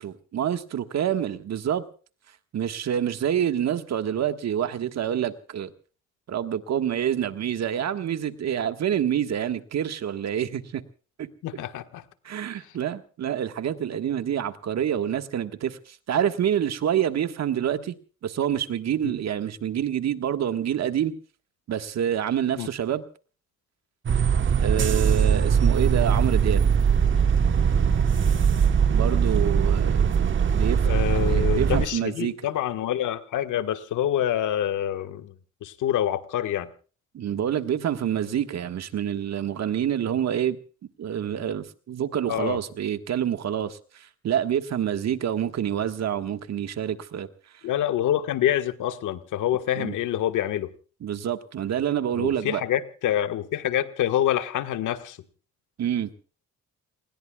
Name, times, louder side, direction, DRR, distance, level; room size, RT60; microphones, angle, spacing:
voice 1, 0.0-1.8 2.5-5.7 6.3-10.8 11.2-11.3 12.2-18.0 18.2-21.1 21.7-23.0 24.6-26.6 28.9-30.1 30.5-32.3 37.1-40.6 41.0-47.3 49.7-49.9 51.0-52.6 55.8-56.1, right 9 dB, 60° right, 1.6 m, -27 dB
voice 2, 11.4-12.0 19.0-19.1 22.5-22.7 30.8-35.3 35.6-36.7 42.3-42.6 47.6-50.7 52.2-55.2, left 11 dB, 80° left, 1.6 m, -26 dB
sound 1, 24.1-31.9, right 7 dB, 40° right, 1.3 m, -21 dB
29.0 x 20.5 x 2.4 m
cardioid pair, 90°, 30 cm